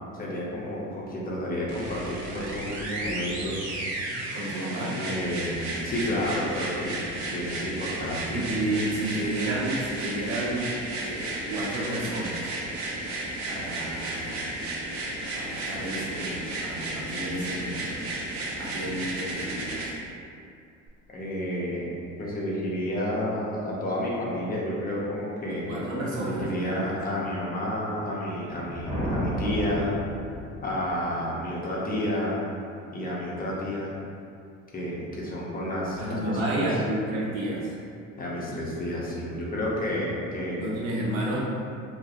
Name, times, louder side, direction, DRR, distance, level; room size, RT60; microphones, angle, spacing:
voice 1, 0.1-3.7 4.8-8.4 21.1-21.9 22.2-25.7 26.1-29.9 30.6-32.5 32.9-33.9 34.7-36.7 38.2-40.7, left 1 dB, 25° left, -5 dB, 0.5 m, -30 dB
sound 1, 1.7-19.9 20.9-21.0, right 2 dB, 45° right, 0.6 m, -33 dB
voice 2, 4.3-5.0 7.1-7.2 8.3-12.6 13.5-14.5 15.3-18.0 18.6-20.0 25.5-27.0 36.0-37.8 40.6-41.5, right 1 dB, 80° right, -6 dB, 0.7 m, -31 dB
sound 2, 28.5-30.9, equal, 20° right, 0.9 m, -32 dB
2.2 x 2.0 x 2.7 m, 2.4 s
hypercardioid pair, 60°, 40 cm